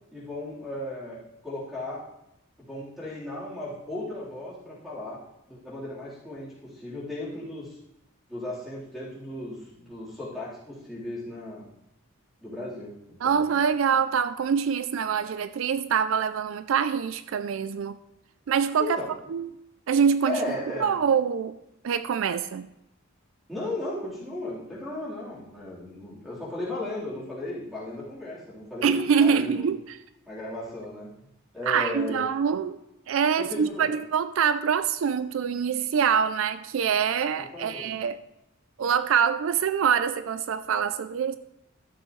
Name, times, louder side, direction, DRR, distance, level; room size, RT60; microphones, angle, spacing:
voice 1, 0.1-2.1 2.6-5.2 5.5-7.8 8.3-11.7 12.4-13.5 18.8-19.1 20.2-20.9 23.5-29.7 30.3-31.1 31.5-32.2 33.4-34.0 37.4-37.9, left 1 dB, ahead, 3.8 m, -35 dB
voice 2, 13.2-18.0 18.5-19.0 19.3-19.5 19.9-20.5 20.8-21.6 21.8-22.7 28.8-30.0 31.7-32.8 33.1-38.2 38.8-41.4, right 7 dB, 70° right, 0.4 m, -25 dB
12.5 x 7.7 x 3.2 m
head